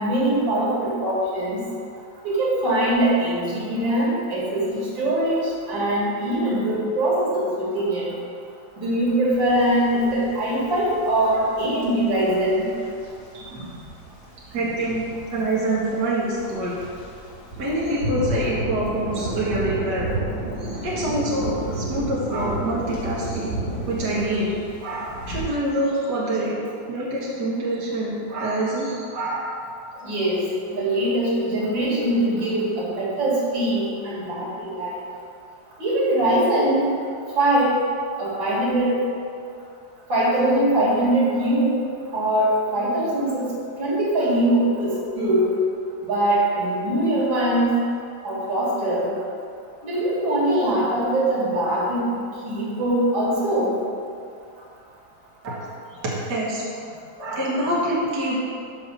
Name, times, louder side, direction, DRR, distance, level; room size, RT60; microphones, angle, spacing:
voice 1, 0.0-1.6 2.2-8.1 8.8-12.7 30.0-30.4 30.7-35.0 35.8-36.9 37.4-37.8 38.2-39.0 40.1-41.8 42.1-43.5 43.8-45.5 46.1-47.8 48.2-49.1 49.8-52.1 52.5-53.7, right 1 dB, 90° right, -6 dB, 2.6 m, -22 dB
sound 1, 9.3-25.4, right 1 dB, 60° left, 2.8 m, -32 dB
voice 2, 13.3-13.7 14.5-15.0 15.3-16.7 17.6-20.1 20.6-23.5 23.9-24.5 24.8-26.5 26.9-29.6 29.9-30.1 55.4-56.6 57.2-58.4, right 1 dB, 65° right, -6 dB, 2.0 m, -26 dB
5.8 x 5.4 x 6.7 m, 2.4 s
omnidirectional pair, 2.0 m